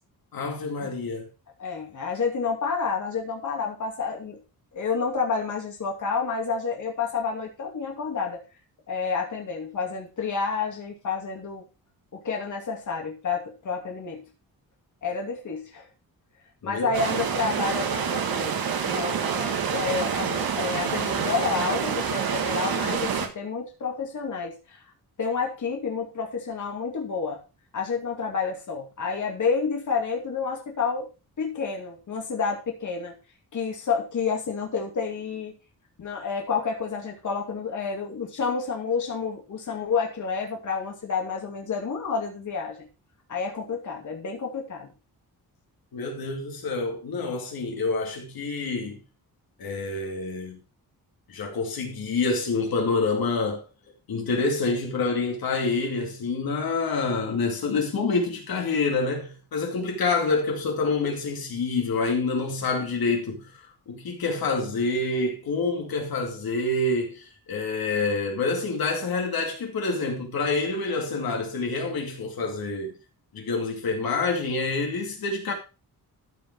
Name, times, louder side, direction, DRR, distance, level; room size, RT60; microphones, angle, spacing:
voice 1, 0.3-1.3 16.6-17.0 45.9-49.0 49.6-50.6 51.3-53.6 54.1-72.9 73.3-75.5, left 3 dB, 70° left, 2.4 m, -27 dB
voice 2, 1.6-4.4 4.7-8.4 8.9-11.6 12.1-14.2 15.0-15.9 16.6-18.6 18.8-24.8 25.2-27.4 27.7-31.1 31.4-33.1 33.5-35.5 36.0-42.9 43.3-44.9, left 5 dB, 50° left, 2.4 m, -29 dB
sound 1, 16.9-23.3, right 7 dB, 70° right, 1.7 m, -27 dB
13.5 x 5.2 x 4.6 m
wide cardioid pair, 175°, 37 cm